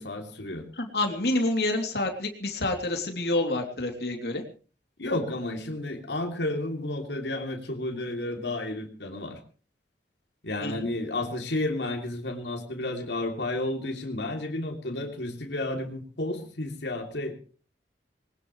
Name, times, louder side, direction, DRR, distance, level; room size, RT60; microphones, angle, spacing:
voice 1, 0.0-0.6 5.0-9.4 10.4-17.3, left 2 dB, 85° left, 3 dB, 3.1 m, -32 dB
voice 2, 0.8-4.4 10.6-10.9, left 2 dB, 65° left, 3 dB, 3.1 m, -28 dB
21.0 x 19.5 x 3.2 m, 0.39 s
head